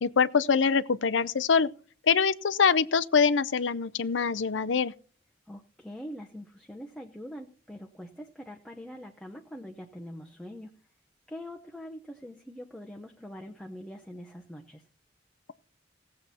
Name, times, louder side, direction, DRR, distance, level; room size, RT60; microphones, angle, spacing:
voice 1, 0.0-1.7 2.1-4.9, left 5 dB, 85° left, 0.6 m, -24 dB
voice 2, 5.5-10.7 11.3-14.9, equal, 5° left, 0.8 m, -43 dB
17.0 x 7.6 x 4.2 m
head